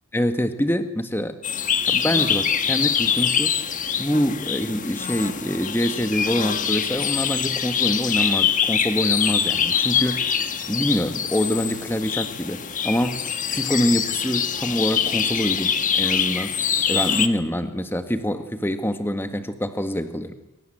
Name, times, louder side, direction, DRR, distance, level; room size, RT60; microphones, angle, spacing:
voice 1, 0.1-1.4 1.9-3.6 4.0-10.4 10.7-16.6 16.9-20.3, equal, 10° left, 8 dB, 1.8 m, -25 dB
sound 1, 1.4-17.3, left 8 dB, 35° left, 1.5 m, -24 dB
27.5 x 24.5 x 8.0 m, 0.93 s
head